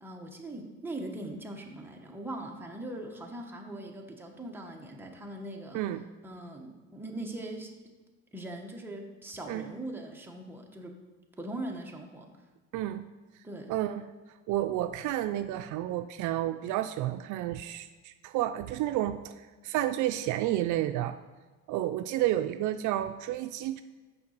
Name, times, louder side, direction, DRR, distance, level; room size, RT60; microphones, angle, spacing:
voice 1, 0.0-5.8 6.2-7.7 8.3-10.9 11.4-12.3 13.4-13.7, right 1 dB, 5° right, 0 dB, 1.2 m, -40 dB
voice 2, 12.7-13.1 13.7-14.0 14.5-21.2 21.7-23.8, right 13 dB, 70° right, 9 dB, 0.5 m, -31 dB
6.9 x 5.2 x 6.5 m, 1.3 s
cardioid pair, 120°, 32 cm